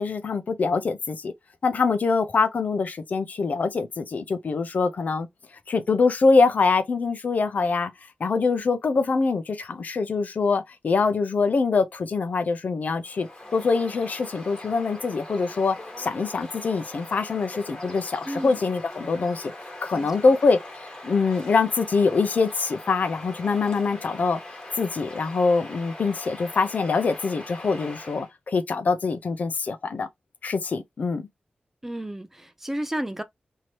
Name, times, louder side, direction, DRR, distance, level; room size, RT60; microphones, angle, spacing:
voice 1, 0.0-1.3 1.6-5.3 5.7-7.9 8.2-19.5 19.8-20.6 21.0-24.4 24.8-30.1 30.4-31.3, left 4 dB, 60° left, 0.5 m, -24 dB
Bird vocalization bird call bird song, 13.0-28.3, left 1 dB, 25° left, 1.3 m, -41 dB
voice 2, 18.3-18.6 19.9-20.3 31.8-33.2, right 1 dB, 10° right, 0.4 m, -32 dB
3.1 x 2.7 x 2.8 m
wide cardioid pair, 130°, 3 cm